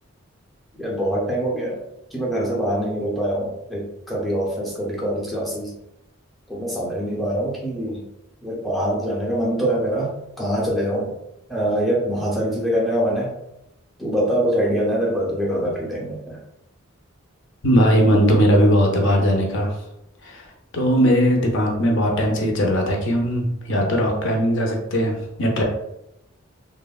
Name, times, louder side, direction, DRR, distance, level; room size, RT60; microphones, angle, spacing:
voice 1, 0.8-1.8 2.1-5.7 6.5-8.0 8.4-10.1 10.4-11.1 11.5-13.3 14.0-16.4, equal, ahead, -4 dB, 0.5 m, -24 dB
voice 2, 17.6-19.7 20.2-20.4 20.7-25.6, equal, 55° left, 1 dB, 0.6 m, -19 dB
3.2 x 2.1 x 2.3 m, 0.85 s
head